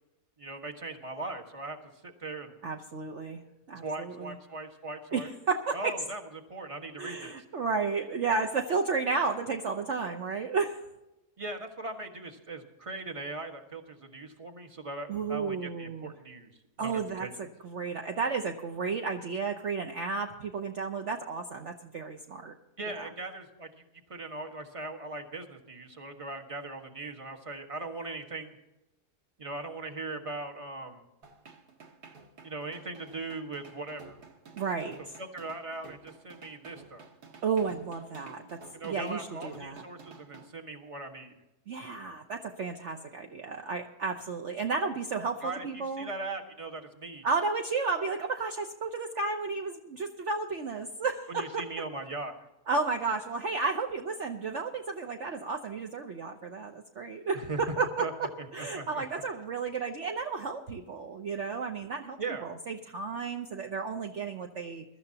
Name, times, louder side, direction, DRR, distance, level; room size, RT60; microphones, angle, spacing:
voice 1, 0.4-1.8 2.0-2.5 3.8-5.3 5.7-7.4 11.4-16.5 16.8-17.3 22.8-23.8 24.1-28.6 29.4-31.0 32.4-34.2 35.2-37.1 38.7-41.3 45.4-47.2 51.3-52.5 57.3-57.6 58.0-58.1 58.4-59.0 62.2-62.5, right 2 dB, 20° right, 3 dB, 1.5 m, -39 dB
voice 2, 2.6-3.4 3.7-4.4 5.1-5.9 7.0-10.8 15.1-16.1 16.8-22.5 23.0-23.1 34.5-35.2 37.4-39.8 41.7-46.1 47.2-51.7 52.7-64.8, right 4 dB, 55° right, 3 dB, 1.1 m, -33 dB
sound 1, 31.2-40.5, right 4 dB, 75° right, 2.2 m, -52 dB
22.5 x 13.0 x 2.9 m, 0.96 s
omnidirectional pair, 1.7 m